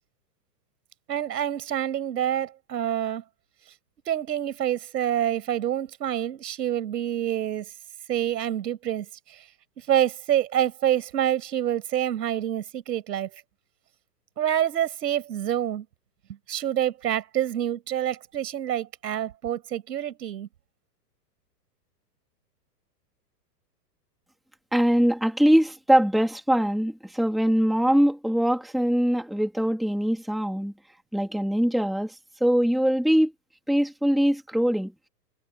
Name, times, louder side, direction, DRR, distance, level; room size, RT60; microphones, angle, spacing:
voice 1, 1.1-3.2 4.1-7.7 8.1-9.4 9.9-13.3 14.4-15.8 16.5-20.5, right 11 dB, 75° right, 4.9 m, -27 dB
voice 2, 24.7-30.7 31.1-32.1 32.4-33.3 33.7-34.9, equal, ahead, 1.9 m, -22 dB
hypercardioid pair, 165°, 49 cm